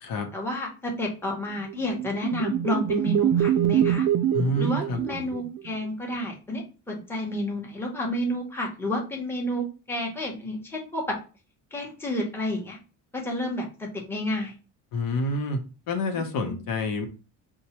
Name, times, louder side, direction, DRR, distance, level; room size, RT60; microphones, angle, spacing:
voice 1, 0.3-4.1 4.6-11.2 11.7-12.8 13.1-14.5 16.1-16.6, left 1 dB, 5° left, -1 dB, 0.9 m, -30 dB
sound 1, 1.7-5.7, right 10 dB, 60° right, 0.5 m, -25 dB
voice 2, 4.3-5.4 14.9-15.6 15.9-17.1, left 1 dB, 70° left, 3 dB, 0.9 m, -28 dB
4.5 x 2.2 x 2.9 m, 0.33 s
cardioid pair, 125°, 35 cm